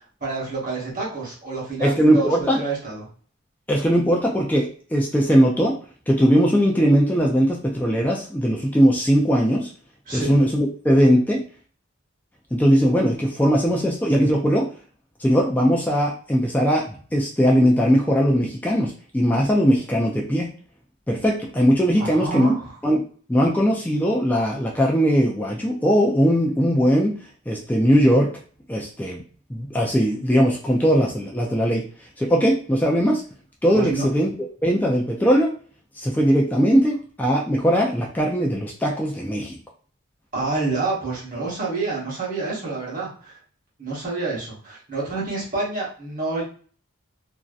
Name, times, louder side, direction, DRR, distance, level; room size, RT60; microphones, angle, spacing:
voice 1, 0.2-3.1 10.1-10.3 22.0-22.7 33.7-34.1 40.3-43.4 43.8-46.4, right 3 dB, 40° right, -5 dB, 1.0 m, -28 dB
voice 2, 1.8-2.6 3.7-5.8 6.1-9.7 10.1-11.4 12.5-14.7 15.2-20.5 21.1-22.5 22.8-23.0 23.3-27.1 27.5-28.3 28.7-29.2 29.5-31.8 32.2-33.2 33.6-34.3 34.6-35.5 36.0-39.6, equal, 10° left, -2 dB, 0.3 m, -19 dB
2.6 x 2.1 x 2.3 m, 0.43 s
head